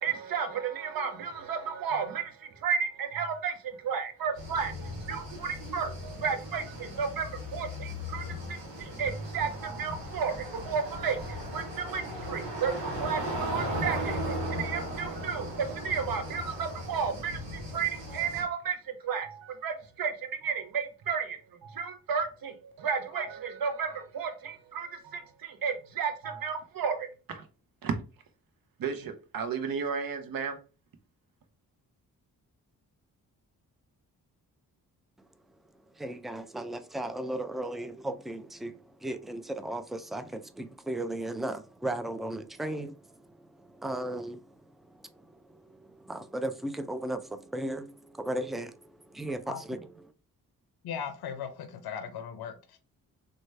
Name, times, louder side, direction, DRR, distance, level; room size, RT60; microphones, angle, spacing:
voice 1, 0.0-27.5 27.8-28.0 28.8-30.6, right 6 dB, 55° right, 0.8 m, -33 dB
sound 1, 4.4-18.4, equal, 90° right, 0.9 m, -37 dB
voice 2, 36.0-44.4 44.9-49.8, right 1 dB, ahead, 0.3 m, -36 dB
voice 3, 50.8-52.8, left 7 dB, 65° left, 0.6 m, -38 dB
3.1 x 2.1 x 3.2 m
supercardioid pair, 45°, 41 cm